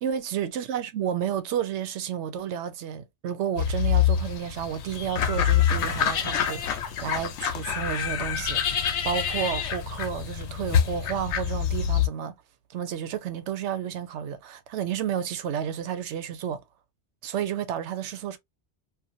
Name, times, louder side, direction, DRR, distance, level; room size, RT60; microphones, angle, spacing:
voice 1, 0.0-12.4 12.7-16.6 17.2-18.4, right 9 dB, 90° right, 0.9 m, -31 dB
sound 1, 3.6-12.1, left 8 dB, 85° left, 0.9 m, -26 dB
2.6 x 2.3 x 2.5 m
omnidirectional pair, 1.1 m